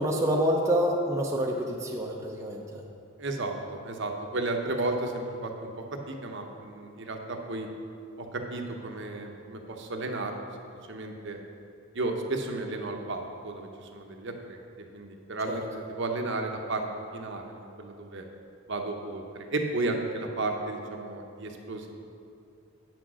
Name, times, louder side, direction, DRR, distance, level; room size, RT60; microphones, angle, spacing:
voice 1, 0.0-2.8 15.5-15.6, equal, 15° right, -2 dB, 0.6 m, -27 dB
voice 2, 3.2-7.7 8.2-10.5 10.9-11.4 11.9-14.6 14.9-16.8 17.1-18.3 18.7-21.9, right 2 dB, 55° right, 3 dB, 0.9 m, -33 dB
8.8 x 6.2 x 6.2 m, 2.5 s
head